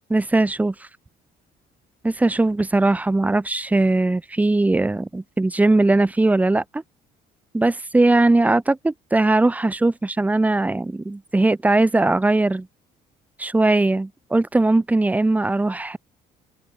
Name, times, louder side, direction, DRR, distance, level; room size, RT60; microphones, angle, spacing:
voice 1, 0.1-0.7 2.0-6.8 7.5-12.7 13.4-16.0, right 2 dB, 10° right, 0.5 m, -19 dB
open air
cardioid pair, 110°, 17 cm